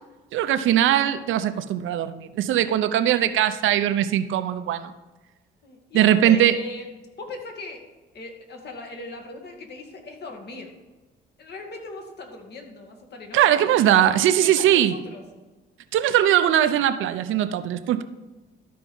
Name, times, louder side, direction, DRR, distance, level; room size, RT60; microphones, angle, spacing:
voice 1, 0.3-4.9 5.9-6.6 13.3-14.9 15.9-18.0, right 11 dB, 80° right, 11 dB, 0.7 m, -20 dB
voice 2, 5.6-6.8 7.2-7.8 8.1-10.7 11.4-15.2, left 3 dB, 55° left, 2 dB, 2.0 m, -39 dB
13.0 x 4.7 x 5.5 m, 1.2 s
cardioid pair, 90°, 20 cm